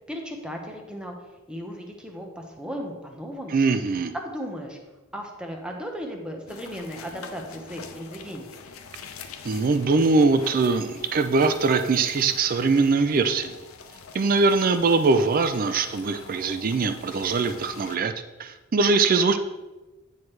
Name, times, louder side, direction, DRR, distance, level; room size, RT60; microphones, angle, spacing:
voice 1, 0.1-1.1 1.5-3.6 4.1-4.8 5.1-8.6, equal, 5° right, 2 dB, 0.9 m, -36 dB
voice 2, 3.5-4.1 9.4-13.5 14.1-18.1 18.4-19.4, right 4 dB, 45° right, 9 dB, 0.4 m, -22 dB
sound 1, 6.5-18.0, left 5 dB, 85° left, 0.6 m, -45 dB
9.2 x 4.6 x 3.2 m, 1.1 s
head